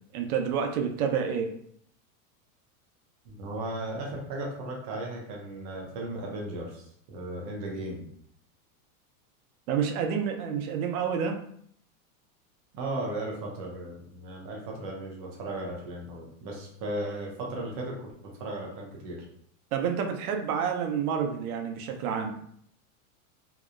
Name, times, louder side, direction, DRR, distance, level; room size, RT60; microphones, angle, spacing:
voice 1, 0.1-1.5 9.7-11.4 19.7-22.3, right 7 dB, 80° right, 4 dB, 0.6 m, -29 dB
voice 2, 3.3-8.1 12.7-18.1 18.4-19.3, right 1 dB, 30° right, -2 dB, 0.3 m, -36 dB
2.8 x 2.0 x 2.3 m, 0.67 s
supercardioid pair, 145°, 43 cm